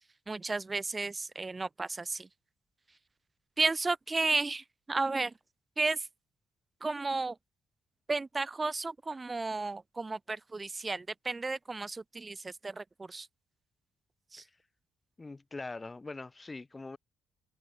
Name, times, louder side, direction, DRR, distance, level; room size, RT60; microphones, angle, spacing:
voice 1, 0.3-2.3 3.6-5.3 5.8-6.1 6.8-7.4 8.1-13.3 14.3-14.4, right 3 dB, 25° right, 0.7 m, -33 dB
voice 2, 15.2-17.0, left 3 dB, 20° left, 0.9 m, -42 dB
cardioid pair, 90°, 0 cm